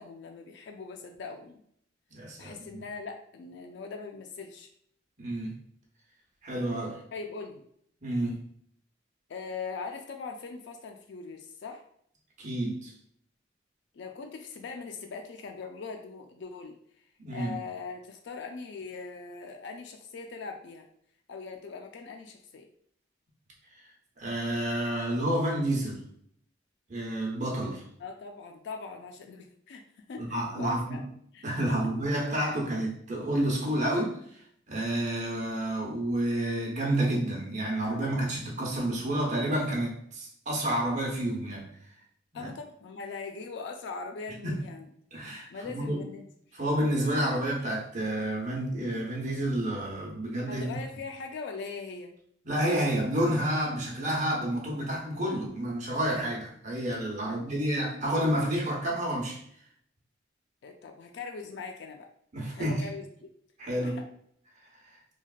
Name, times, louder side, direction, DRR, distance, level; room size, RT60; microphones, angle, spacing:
voice 1, 0.0-1.6 2.4-4.7 7.1-7.6 9.3-11.8 13.9-16.8 17.3-20.9 21.3-22.7 28.0-29.8 30.1-31.0 31.3-31.8 42.3-44.9 45.5-46.3 50.5-52.1 57.2-57.5 60.6-62.1 62.5-63.3 63.8-64.0, left 4 dB, 65° left, 4 dB, 0.3 m, -41 dB
voice 2, 2.1-2.5 5.2-5.5 6.4-7.0 8.0-8.4 12.4-12.9 17.2-17.6 24.2-26.0 26.9-27.8 30.2-31.0 31.4-34.2 34.7-41.7 42.4-42.5 44.4-44.6 45.1-46.0 46.5-50.6 52.4-59.4 62.3-62.8 63.6-64.0, right 1 dB, 40° right, -2 dB, 0.8 m, -29 dB
3.2 x 2.3 x 2.4 m, 0.66 s
head